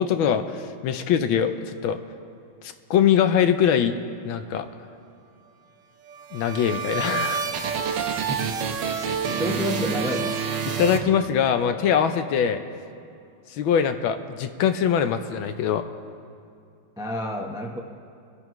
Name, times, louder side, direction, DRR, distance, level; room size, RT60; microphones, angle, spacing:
voice 1, 0.0-2.0 2.6-3.9 4.2-4.7 6.3-7.4 10.8-12.6 13.5-15.8, left 8 dB, 75° left, 9 dB, 1.4 m, -22 dB
sound 1, 6.1-11.7, right 6 dB, 65° right, 1.4 m, -28 dB
voice 2, 9.3-10.4 17.0-17.8, equal, 5° right, 1 dB, 0.3 m, -29 dB
25.0 x 11.0 x 3.1 m, 2.4 s
omnidirectional pair, 2.3 m